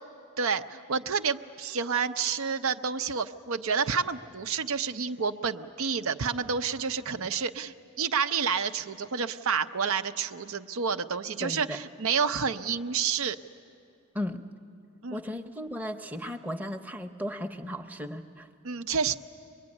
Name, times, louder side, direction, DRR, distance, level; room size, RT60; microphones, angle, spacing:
voice 1, 0.4-13.4 15.0-15.2 18.6-19.2, right 6 dB, 70° right, 8 dB, 0.7 m, -29 dB
voice 2, 11.4-11.8 14.1-14.5 15.1-18.5, equal, 10° right, 4 dB, 0.8 m, -35 dB
23.5 x 22.0 x 9.8 m, 2.4 s
head